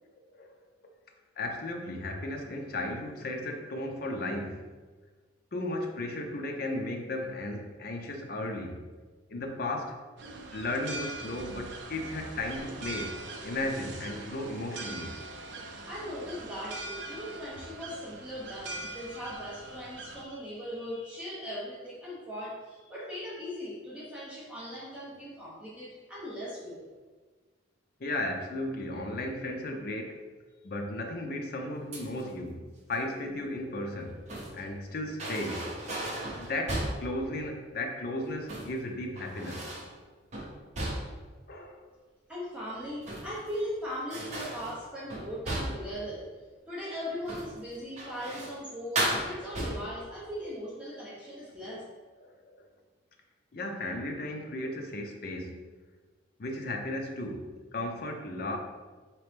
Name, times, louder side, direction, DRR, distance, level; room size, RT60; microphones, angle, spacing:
voice 1, 1.4-4.7 5.5-8.9 9.3-10.0 10.5-13.2 13.4-15.2 28.0-30.2 30.6-34.2 34.5-35.7 36.3-39.7 41.5-41.9 52.2-52.6 53.5-55.6 56.4-58.6, left 1 dB, 50° left, 3 dB, 0.5 m, -35 dB
sound 1, 10.2-20.2, right 2 dB, 65° right, 0.4 m, -42 dB
voice 2, 15.4-26.9 42.3-46.3 46.7-51.8, equal, 5° right, -8 dB, 0.8 m, -39 dB
sound 2, 31.9-32.3 33.9-34.7 35.2-37.1 38.3-38.8 39.1-39.9 40.3-41.3 42.8-43.6 44.1-45.9 47.2-47.6 48.0-48.6 48.9-50.0, right 1 dB, 35° right, 0.7 m, -35 dB
4.2 x 3.0 x 3.3 m, 1.4 s
head